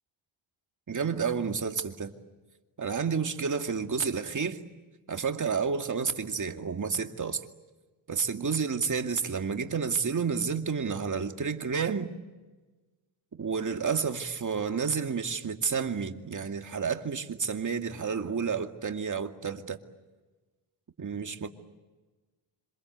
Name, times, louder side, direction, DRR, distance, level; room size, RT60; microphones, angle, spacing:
voice 1, 0.9-2.1 2.8-4.6 5.1-7.4 8.1-12.1 13.4-19.8 21.0-21.5, right 5 dB, 35° right, 2.3 m, -30 dB
27.0 x 26.5 x 8.1 m
cardioid pair, 100°, 50 cm